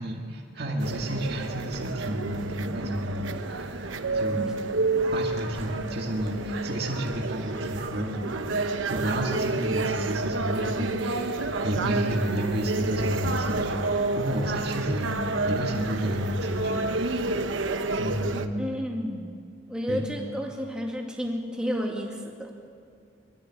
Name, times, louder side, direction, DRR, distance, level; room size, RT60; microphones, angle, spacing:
voice 1, 0.0-4.5 5.1-17.5 18.0-18.6 19.9-20.0, equal, 55° right, 0 dB, 2.2 m, -31 dB
sound 1, 0.8-18.5, right 3 dB, 75° right, 1.0 m, -30 dB
voice 2, 18.6-22.5, equal, 5° right, -1 dB, 2.2 m, -31 dB
21.5 x 13.5 x 8.9 m, 2.3 s
head